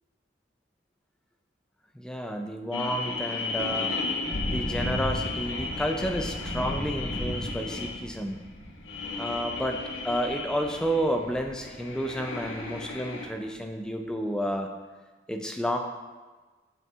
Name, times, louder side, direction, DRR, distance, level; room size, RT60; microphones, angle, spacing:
voice 1, 2.0-4.0 4.4-8.4 9.2-14.7 15.3-15.8, equal, 5° left, 4 dB, 0.3 m, -31 dB
sound 1, 2.7-13.3, left 3 dB, 80° left, 0.7 m, -35 dB
Thunder / Rain, 3.4-12.9, equal, 35° left, 1.0 m, -37 dB
7.6 x 5.2 x 2.4 m, 1.3 s
head